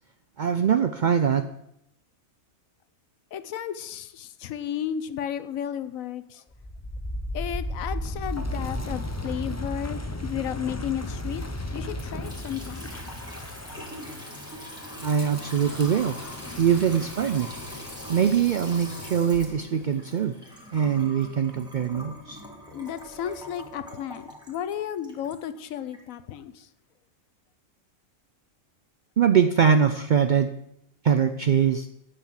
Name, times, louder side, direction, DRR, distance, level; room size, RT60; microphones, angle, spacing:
voice 1, 0.4-1.5 15.0-16.1 16.6-17.5 18.1-20.3 20.7-22.4 29.2-30.5 31.0-31.9, right 7 dB, 75° right, 9 dB, 0.4 m, -22 dB
voice 2, 3.3-6.4 7.3-11.4 11.7-12.9 22.7-26.7, left 9 dB, 80° left, 13 dB, 1.1 m, -33 dB
Wind, 6.5-19.5, left 1 dB, 15° left, 0.6 m, -35 dB
Water tap faucet / Sink (filling or washing) / Trickle dribble, 11.9-26.0, equal, 5° right, 2.2 m, -43 dB
9.0 x 6.8 x 7.5 m, 0.79 s
omnidirectional pair, 1.4 m